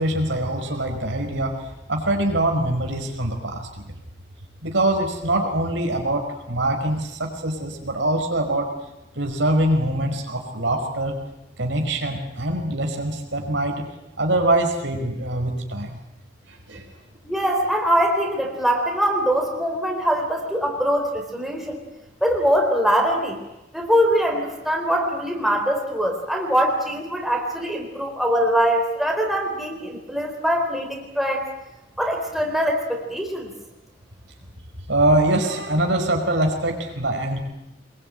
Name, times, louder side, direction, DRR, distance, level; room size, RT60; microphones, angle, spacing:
voice 1, 0.0-1.5 1.9-3.8 4.6-8.7 9.1-11.2 11.6-13.9 14.2-16.0 16.7-16.9 34.9-37.4, right 1 dB, 65° right, 3 dB, 5.1 m, -23 dB
voice 2, 17.2-21.8 22.2-23.4 23.7-31.5 32.0-33.5, equal, ahead, 0 dB, 4.2 m, -22 dB
24.5 x 22.0 x 9.2 m, 0.93 s
head